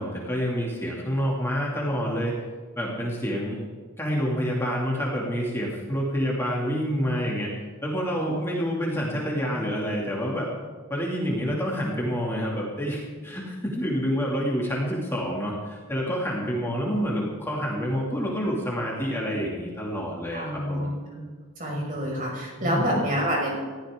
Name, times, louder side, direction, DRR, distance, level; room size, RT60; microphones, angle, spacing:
voice 1, 0.0-2.3 2.8-3.6 4.0-7.5 7.8-10.5 10.9-20.9 22.6-23.0, equal, 10° left, -4 dB, 2.5 m, -28 dB
voice 2, 20.3-21.2 21.6-23.6, equal, 40° right, -2 dB, 5.8 m, -28 dB
20.5 x 15.0 x 3.8 m, 1.5 s
head